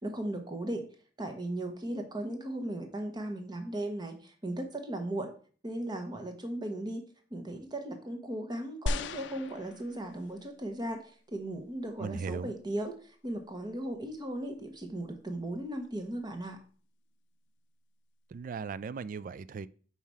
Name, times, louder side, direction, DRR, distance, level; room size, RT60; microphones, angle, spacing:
voice 1, 0.0-0.8 1.2-5.3 5.6-7.0 7.3-11.0 11.3-12.9 13.2-16.6, right 1 dB, 25° right, 1.0 m, -37 dB
sound 1, 8.9-10.4 11.1-11.2, left 2 dB, 80° left, 0.4 m, -35 dB
voice 2, 12.0-12.5 18.3-19.7, right 5 dB, 50° right, 0.3 m, -37 dB
5.7 x 4.2 x 4.7 m
head